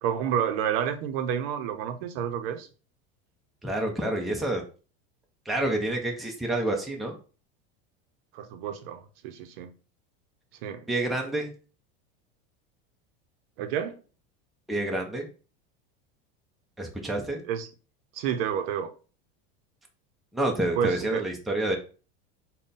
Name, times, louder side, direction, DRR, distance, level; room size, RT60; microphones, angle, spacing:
voice 1, 0.0-2.7 8.3-9.7 10.6-10.8 13.6-14.0 17.5-17.7 18.1-18.9 20.8-21.2, right 8 dB, 70° right, 0.6 m, -29 dB
voice 2, 3.6-4.6 5.5-7.2 10.9-11.5 14.7-15.3 16.8-17.4 20.3-21.8, right 1 dB, ahead, 0.5 m, -28 dB
3.6 x 2.2 x 3.9 m
supercardioid pair, 135°, 30 cm